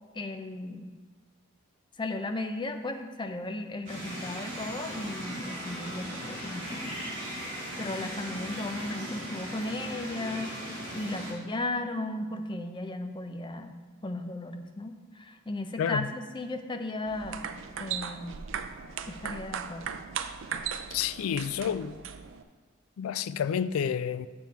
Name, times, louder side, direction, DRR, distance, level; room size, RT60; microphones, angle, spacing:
voice 1, 0.1-0.9 2.0-7.0 7.4-13.8 14.0-17.4 17.8-18.4 19.1-19.9, left 2 dB, 20° left, 0.5 m, -36 dB
sound 1, 3.9-11.3, equal, 35° right, 2.8 m, -38 dB
sound 2, 17.1-22.4, right 7 dB, 60° right, 0.4 m, -37 dB
voice 2, 20.9-22.0 23.0-24.3, left 8 dB, 85° left, 0.3 m, -29 dB
7.2 x 6.9 x 4.5 m
head